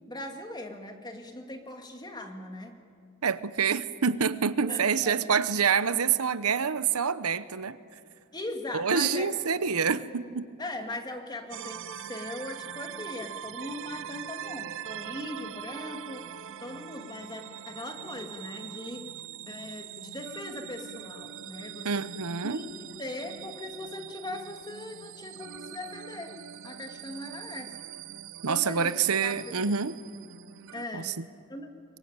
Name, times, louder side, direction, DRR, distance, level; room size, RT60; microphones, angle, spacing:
voice 1, 0.1-2.8 4.6-5.2 8.3-9.3 10.6-19.1 19.5-22.1 22.4-26.4 26.6-27.7 28.5-28.9 29.2-29.5 30.7-31.2 31.5-31.7, left 1 dB, 20° left, 2.4 m, -39 dB
voice 2, 3.2-7.8 8.7-10.5 21.8-22.6 28.4-29.9 30.9-31.2, right 6 dB, 85° right, 0.9 m, -27 dB
sound 1, 11.5-30.9, right 10 dB, 60° right, 0.5 m, -42 dB
25.5 x 23.0 x 9.0 m
head